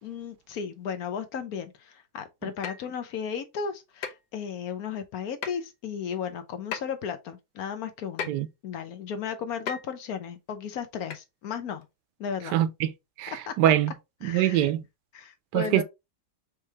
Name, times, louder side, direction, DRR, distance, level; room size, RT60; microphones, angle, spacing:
voice 1, 0.0-8.3 8.6-11.8 12.2-12.6 13.5-13.6 14.2-14.7 15.1-15.8, left 7 dB, 65° left, 1.1 m, -35 dB
sound 1, 2.6-2.9 4.0-4.2 5.4-5.7 6.7-6.8 8.2-8.4 9.7-9.9 11.1-11.2 11.8-11.9, left 6 dB, 80° left, 1.4 m, -35 dB
voice 2, 12.5-12.9 13.2-13.9 14.2-14.8 15.5-15.8, right 12 dB, 80° right, 1.2 m, -23 dB
4.6 x 3.1 x 3.3 m
omnidirectional pair, 1.8 m